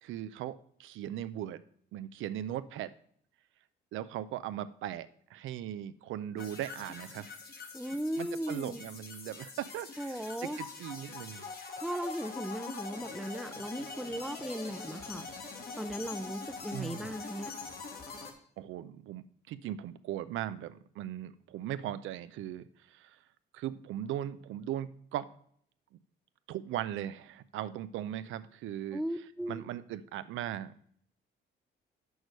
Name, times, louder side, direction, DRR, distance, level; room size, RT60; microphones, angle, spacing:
voice 1, 0.0-1.6 1.9-2.9 3.9-7.3 8.2-11.5 16.7-17.2 18.6-23.2 23.5-25.3 26.5-29.0 29.5-30.7, right 12 dB, 80° right, 13 dB, 0.5 m, -39 dB
sound 1, 6.4-18.3, left 4 dB, 50° left, 1.5 m, -44 dB
voice 2, 7.7-8.8 10.0-10.6 11.8-15.3 15.8-17.6 28.9-29.6, equal, ahead, 11 dB, 0.5 m, -37 dB
6.3 x 4.7 x 6.5 m, 0.63 s
cardioid pair, 90°, 20 cm